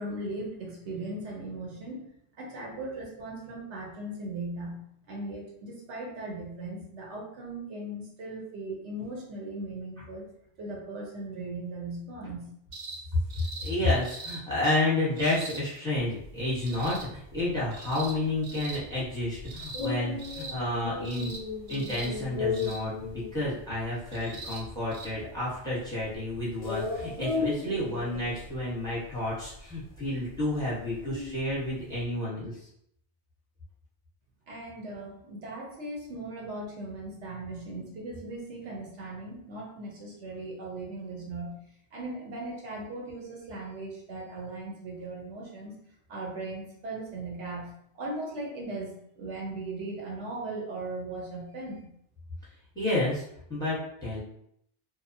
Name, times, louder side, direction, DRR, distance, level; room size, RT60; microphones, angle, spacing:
voice 1, 0.0-2.0 2.4-4.8 5.1-10.3 10.6-12.5 34.5-41.6 41.9-45.7 46.1-51.9, right 2 dB, 70° right, -2 dB, 1.0 m, -38 dB
sound 1, 12.7-13.0 13.3-13.7 14.0-14.4 15.2-15.6 16.6-17.0 17.7-18.1 18.4-18.8 19.5-19.9 20.2-20.6 21.0-21.4 21.7-22.1 22.5-22.8 24.1-24.6 24.9-25.1 26.2-26.3, right 3 dB, 50° right, 0.5 m, -41 dB
voice 2, 13.3-21.3 21.7-32.7 52.7-53.2 53.5-54.2, left 1 dB, 5° left, -7 dB, 0.8 m, -30 dB
sound 2, 16.0-32.1, left 4 dB, 50° left, 0.4 m, -37 dB
2.8 x 2.2 x 2.6 m, 0.72 s
omnidirectional pair, 1.3 m